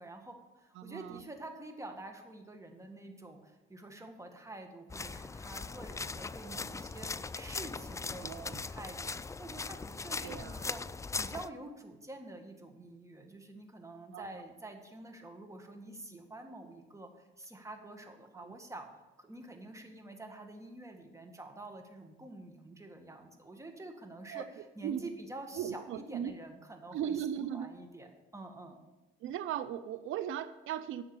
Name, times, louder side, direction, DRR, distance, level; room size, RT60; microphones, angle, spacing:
voice 1, 0.0-18.9 19.2-27.1 27.5-28.8, right 2 dB, 15° right, 4 dB, 1.8 m, -48 dB
voice 2, 0.8-1.2 8.2-8.6 10.2-10.7 14.1-14.3 18.3-18.5 24.3-24.5 24.8-25.0 25.5-26.3 26.9-27.7 29.2-31.0, right 9 dB, 85° right, 13 dB, 0.6 m, -37 dB
sound 1, 4.9-11.5, left 4 dB, 15° left, 0.3 m, -40 dB
10.5 x 7.0 x 6.9 m, 1.1 s
cardioid pair, 90°, 20 cm